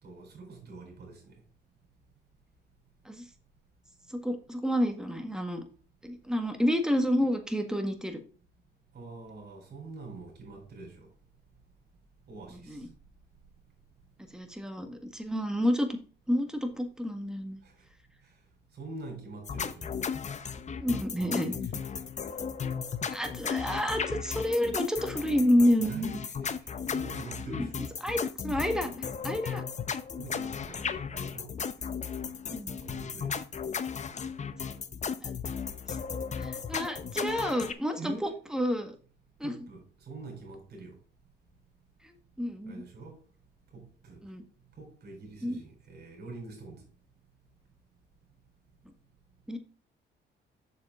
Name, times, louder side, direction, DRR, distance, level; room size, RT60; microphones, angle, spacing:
voice 1, 0.0-1.4 8.9-11.1 12.3-12.8 17.6-17.7 18.7-20.0 21.1-21.8 25.8-27.8 30.2-31.5 32.8-33.3 38.0-38.4 39.4-41.0 42.6-43.2 43.7-44.2 44.8-46.8, right 3 dB, 55° right, 4.2 m, -45 dB
voice 2, 4.1-5.6 6.0-8.2 12.7-12.9 14.3-15.9 16.3-17.6 20.8-21.5 23.1-26.1 27.5-27.7 28.0-29.6 32.5-32.8 35.2-35.3 35.9-36.0 36.3-38.9 39.4-39.5 42.0-42.8 44.2-44.4 45.4-45.6 49.5-49.6, equal, 5° right, 1.7 m, -29 dB
sound 1, 19.5-37.7, left 6 dB, 35° left, 0.7 m, -35 dB
6.9 x 6.9 x 3.8 m
cardioid pair, 90°, 20 cm